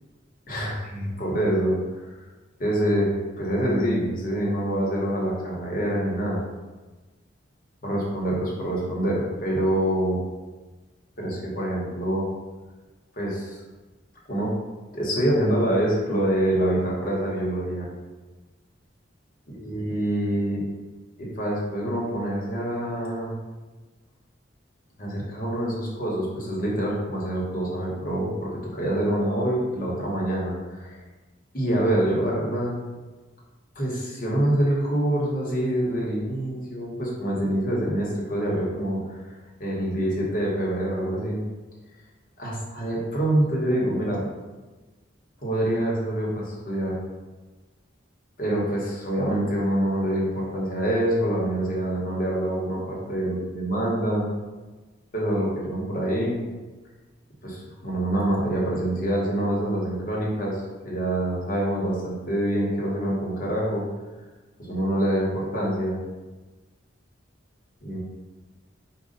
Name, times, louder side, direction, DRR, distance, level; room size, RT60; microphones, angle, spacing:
voice 1, 0.5-1.7 2.6-6.4 7.8-10.2 11.2-12.3 13.2-13.6 14.3-14.5 14.9-17.9 19.6-20.6 21.2-23.3 25.0-31.0 31.5-32.8 33.7-39.3 39.6-41.4 42.4-44.2 45.4-46.9 48.4-54.3 55.1-56.4 57.4-63.8 64.6-65.9 67.8-68.0, right 1 dB, 45° left, -4 dB, 1.1 m, -26 dB
5.2 x 2.4 x 3.8 m, 1.2 s
head